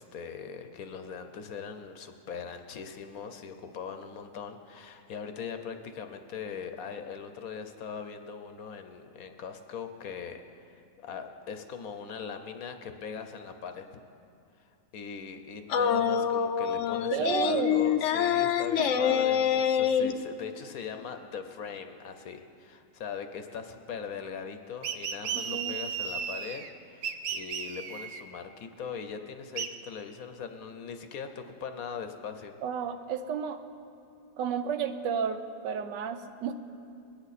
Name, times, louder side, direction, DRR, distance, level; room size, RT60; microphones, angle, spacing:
voice 1, 0.0-13.9 14.6-32.6, left 6 dB, 65° left, 7 dB, 1.0 m, -40 dB
sound 1, 15.7-20.1, left 8 dB, 80° left, 0.6 m, -26 dB
voice 2, 17.1-17.9 18.8-19.2 25.5-25.8 32.6-33.6 34.4-36.5, right 7 dB, 85° right, 8 dB, 1.4 m, -32 dB
sound 2, 24.8-26.7 27.0-28.2 29.6-29.7, right 7 dB, 65° right, 1.1 m, -34 dB
21.5 x 10.0 x 4.1 m, 2.5 s
omnidirectional pair, 1.9 m